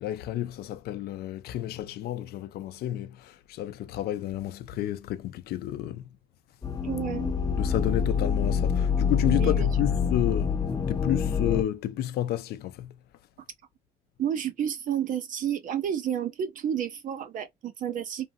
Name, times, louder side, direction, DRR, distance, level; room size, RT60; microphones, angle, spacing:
voice 1, 0.0-6.1 7.6-10.5 10.9-12.9, left 13 dB, 70° left, 0.5 m, -31 dB
sound 1, 6.6-11.6, left 6 dB, 25° left, 0.6 m, -26 dB
voice 2, 6.8-7.3 9.2-9.9 14.2-18.3, right 9 dB, 50° right, 0.5 m, -31 dB
2.7 x 2.5 x 2.5 m
cardioid pair, 110°, 17 cm